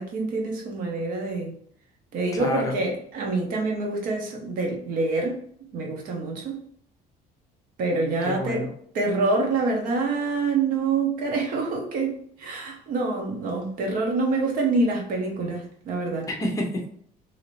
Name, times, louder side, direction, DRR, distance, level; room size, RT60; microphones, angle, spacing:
voice 1, 0.0-1.5 2.1-5.4 5.7-6.6 7.8-8.7 8.9-16.3, right 3 dB, 60° right, 1 dB, 0.9 m, -26 dB
voice 2, 2.3-2.8 8.2-8.7 16.3-16.9, left 1 dB, 20° left, 1 dB, 0.7 m, -28 dB
2.8 x 2.6 x 3.1 m, 0.64 s
cardioid pair, 160°, 16 cm